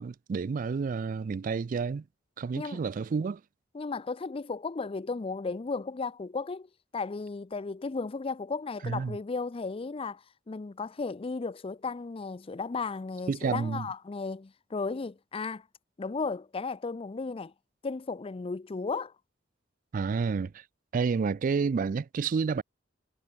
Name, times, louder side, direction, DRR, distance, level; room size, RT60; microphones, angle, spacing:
voice 1, 0.0-2.0 2.4-3.4 8.8-9.2 13.3-13.9 19.9-20.6 20.9-22.6, right 5 dB, 45° right, 0.3 m, -30 dB
voice 2, 3.7-15.7 16.0-17.5 17.8-19.1, left 4 dB, 30° left, 0.4 m, -35 dB
head